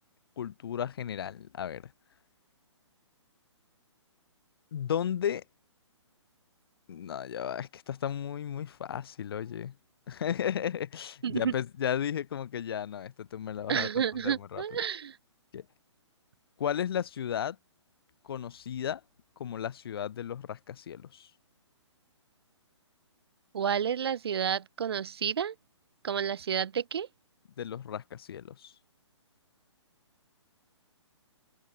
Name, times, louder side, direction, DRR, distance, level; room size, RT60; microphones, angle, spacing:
voice 1, 0.4-1.9 4.7-5.4 6.9-9.8 10.1-13.9 14.2-14.6 15.5-15.6 16.6-17.6 18.2-19.0 19.4-21.3 27.6-28.7, left 9 dB, 50° left, 4.2 m, -34 dB
voice 2, 11.2-11.5 13.7-15.2 23.5-25.5 26.0-27.1, right 8 dB, 55° right, 1.5 m, -30 dB
figure-of-eight pair, 130°, 15 cm